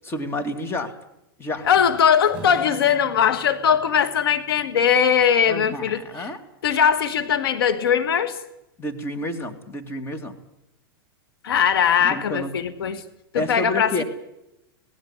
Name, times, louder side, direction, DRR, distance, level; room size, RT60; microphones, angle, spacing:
voice 1, 0.0-0.9 1.4-1.7 5.5-6.4 8.8-10.3 12.0-12.5 13.3-14.0, left 2 dB, 20° left, 7 dB, 2.5 m, -29 dB
voice 2, 1.6-6.3 6.6-8.4 11.4-13.0 13.3-14.0, left 8 dB, 75° left, 11 dB, 1.7 m, -20 dB
Strum, 2.3-6.2, right 1 dB, 10° right, 7.8 m, -45 dB
18.5 x 16.5 x 9.8 m, 0.86 s
hypercardioid pair, 120°, 12 cm